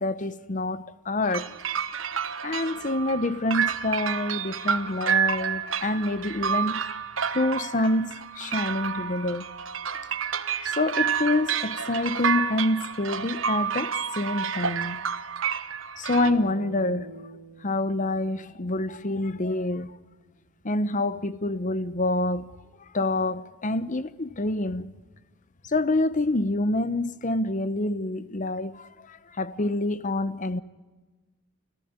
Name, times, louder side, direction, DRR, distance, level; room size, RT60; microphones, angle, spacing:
voice 1, 0.0-1.5 2.4-7.0 7.3-9.5 10.6-15.0 16.0-17.3 17.6-20.0 20.6-22.5 22.9-24.9 25.7-30.6, left 2 dB, 40° left, 1.0 m, -27 dB
sound 1, 1.2-16.3, right 7 dB, 75° right, 1.2 m, -29 dB
sound 2, 16.2-20.2, right 1 dB, 55° right, 2.9 m, -45 dB
29.0 x 15.0 x 9.7 m
head